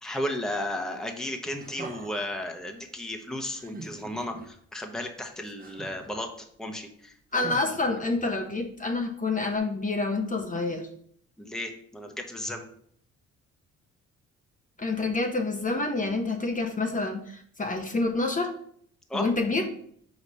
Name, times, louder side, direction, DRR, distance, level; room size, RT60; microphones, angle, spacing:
voice 1, 0.0-6.3 6.6-7.5 11.4-12.6 19.1-19.3, left 1 dB, ahead, 4 dB, 0.9 m, -34 dB
sound 1, 1.5-2.4 3.5-4.5 5.6-6.2 7.3-8.5 9.5-9.6, right 4 dB, 30° right, 1.0 m, -43 dB
voice 2, 7.3-10.9 14.8-18.5 19.1-19.7, left 3 dB, 25° left, 4 dB, 0.9 m, -28 dB
5.1 x 4.0 x 5.5 m, 0.63 s
cardioid pair, 90°, 30 cm